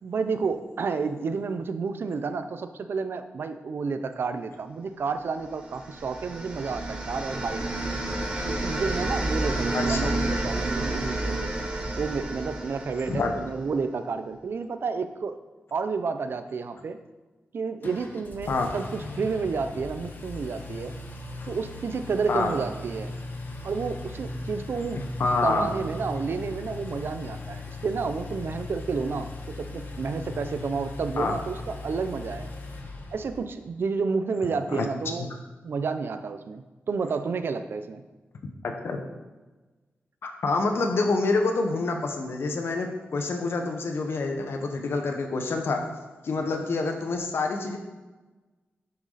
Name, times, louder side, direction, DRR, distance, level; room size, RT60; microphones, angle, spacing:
voice 1, 0.0-7.6 8.4-11.5 12.0-15.4 15.7-17.0 17.5-20.9 21.5-23.1 23.6-25.0 25.4-32.5 33.1-35.3 35.6-38.0, right 5 dB, 60° right, 9 dB, 0.7 m, -30 dB
sound 1, 5.6-13.6, right 1 dB, 20° right, 1.3 m, -30 dB
voice 2, 9.7-10.1 13.1-13.3 18.5-18.7 22.3-22.5 24.9-25.7 31.2-31.4 34.7-34.9 38.6-39.0 40.2-45.8 46.2-47.8, left 3 dB, 65° left, 4 dB, 1.3 m, -27 dB
Engine, 17.8-33.5, left 2 dB, 50° left, 1.3 m, -38 dB
11.5 x 7.1 x 4.2 m, 1.2 s
wide cardioid pair, 155°, 4 cm